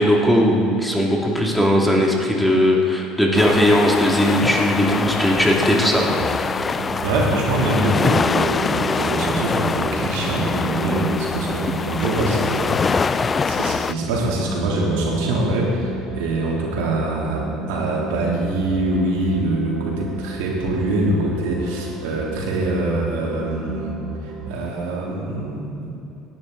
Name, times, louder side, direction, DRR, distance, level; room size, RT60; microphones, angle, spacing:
voice 1, 0.0-6.0, equal, 5° left, -2 dB, 2.4 m, -18 dB
sound 1, 3.4-13.9, left 5 dB, 25° left, 0.3 m, -24 dB
sound 2, 6.2-24.5, right 2 dB, 65° right, 1.9 m, -33 dB
voice 2, 6.8-23.9 24.2-26.0, right 2 dB, 90° right, -3 dB, 3.1 m, -24 dB
18.0 x 10.5 x 3.9 m, 2.9 s
supercardioid pair, 100°, 0 cm